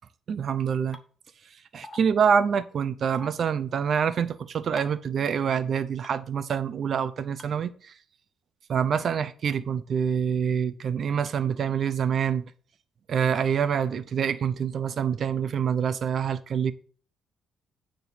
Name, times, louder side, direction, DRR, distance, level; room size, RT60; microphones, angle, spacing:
voice 1, 0.3-1.0 1.7-7.9 8.7-12.4 13.1-16.7, right 7 dB, 55° right, 0.8 m, -26 dB
sound 1, 0.9-1.0 1.8-2.0 3.1-3.3 4.8-5.0 6.0-6.1 7.4-7.5, left 3 dB, 25° left, 1.0 m, -42 dB
9.2 x 3.9 x 6.6 m
cardioid pair, 90°, 0 cm